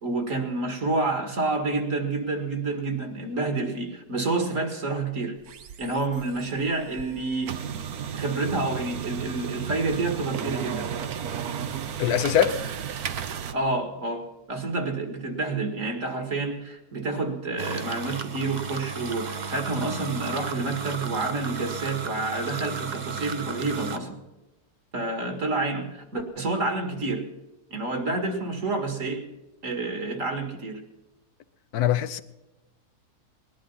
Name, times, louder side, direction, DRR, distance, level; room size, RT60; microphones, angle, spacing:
voice 1, 0.0-5.3 5.8-7.7 8.1-10.9 13.5-24.2 24.9-27.2 27.7-29.2 29.6-30.8, right 3 dB, 50° right, 2.5 m, -28 dB
sound 1, 5.4-13.5, right 8 dB, 70° right, 1.4 m, -34 dB
voice 2, 12.0-12.6 31.7-32.2, left 10 dB, 70° left, 1.3 m, -22 dB
sound 2, 17.6-24.0, right 5 dB, 35° right, 0.8 m, -35 dB
20.0 x 11.5 x 5.6 m
omnidirectional pair, 1.7 m